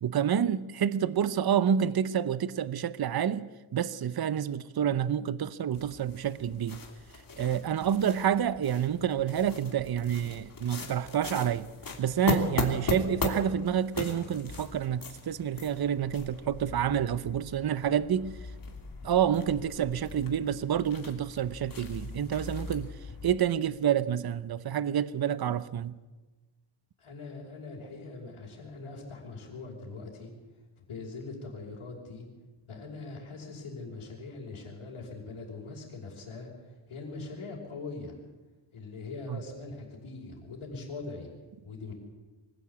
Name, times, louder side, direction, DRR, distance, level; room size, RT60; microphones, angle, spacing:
voice 1, 0.0-6.8 7.4-11.7 12.0-18.3 19.0-22.9 23.2-25.9 39.3-39.4, right 9 dB, 50° right, 0.8 m, -28 dB
sound 1, 5.7-23.4, left 3 dB, 40° left, 3.1 m, -39 dB
voice 2, 27.0-30.3 30.8-32.3 32.7-36.5 36.9-38.2 38.7-41.3 41.6-41.9, left 3 dB, 75° left, 5.4 m, -42 dB
24.5 x 15.5 x 8.5 m
wide cardioid pair, 115°, 49 cm